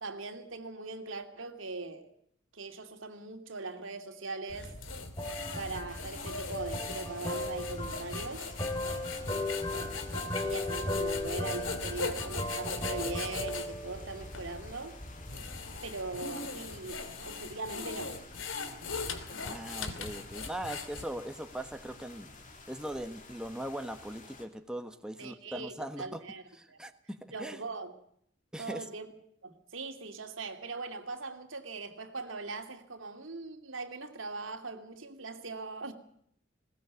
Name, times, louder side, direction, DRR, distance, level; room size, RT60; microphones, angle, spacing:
voice 1, 0.0-2.1 2.5-4.7 5.6-8.5 10.4-15.0 15.8-18.2 25.2-26.4 26.7-26.8 27.3-27.9 28.6-29.1 29.4-35.9, right 3 dB, 90° right, 2.6 m, -40 dB
sound 1, 4.5-13.7 14.3-14.4 15.1-21.3, left 4 dB, 90° left, 2.7 m, -40 dB
sound 2, 4.5-16.1, left 1 dB, 25° left, 2.5 m, -37 dB
sound 3, 5.9-24.5, left 3 dB, 45° left, 3.2 m, -52 dB
voice 2, 19.4-22.3 22.7-26.2 26.5-27.6 28.5-28.9, right 1 dB, 5° right, 1.3 m, -40 dB
21.0 x 18.0 x 8.2 m
head